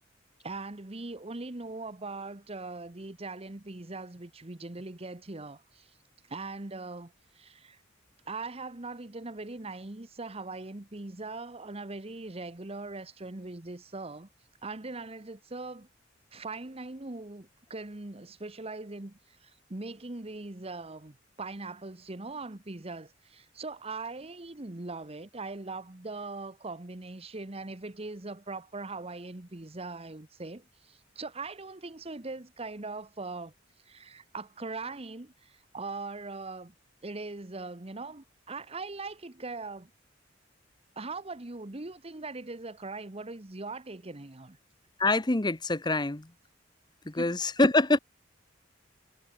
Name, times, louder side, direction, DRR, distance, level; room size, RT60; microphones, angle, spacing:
voice 1, 0.4-5.9 6.3-7.8 8.2-14.3 14.6-15.9 16.3-33.5 33.9-36.7 37.0-39.9 41.0-44.6 47.2-47.7, right 3 dB, 30° right, 1.2 m, -40 dB
voice 2, 45.0-46.3 47.1-48.0, left 2 dB, 25° left, 1.0 m, -25 dB
head